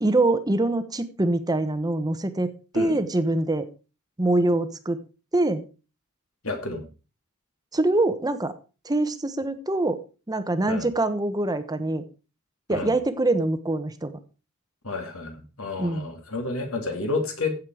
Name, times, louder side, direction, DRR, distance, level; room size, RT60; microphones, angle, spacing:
voice 1, 0.0-3.6 4.2-5.0 5.3-5.6 7.7-8.5 8.8-10.0 10.3-12.0 12.7-14.1 15.8-16.1, right 2 dB, 20° right, 11 dB, 1.0 m, -24 dB
voice 2, 6.4-6.8 10.6-10.9 12.7-12.9 14.8-17.6, left 3 dB, 70° left, 4 dB, 3.0 m, -30 dB
15.0 x 7.5 x 4.8 m, 0.34 s
head